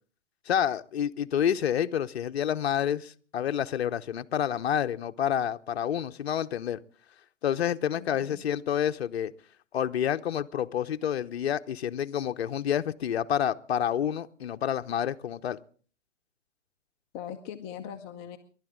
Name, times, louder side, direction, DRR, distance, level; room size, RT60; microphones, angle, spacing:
voice 1, 0.5-6.8 7.4-9.3 9.7-15.6, left 9 dB, 60° left, 0.8 m, -28 dB
voice 2, 7.9-8.4 17.1-18.4, left 9 dB, 20° left, 0.7 m, -40 dB
29.5 x 12.0 x 3.7 m
figure-of-eight pair, 130°, 36 cm